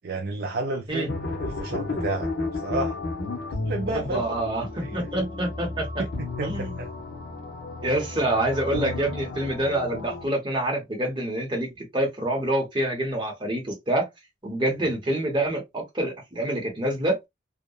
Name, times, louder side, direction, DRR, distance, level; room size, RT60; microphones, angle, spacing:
voice 1, 0.0-1.1 1.6-3.0 3.6-4.4 6.0-6.1 6.4-6.9, right 2 dB, 55° right, 0.4 m, -31 dB
sound 1, 1.1-10.3, left 3 dB, 70° left, 0.8 m, -33 dB
voice 2, 3.9-6.0 6.4-6.8 7.8-14.1 14.4-17.2, right 1 dB, 25° right, 0.9 m, -27 dB
2.8 x 2.1 x 2.2 m
head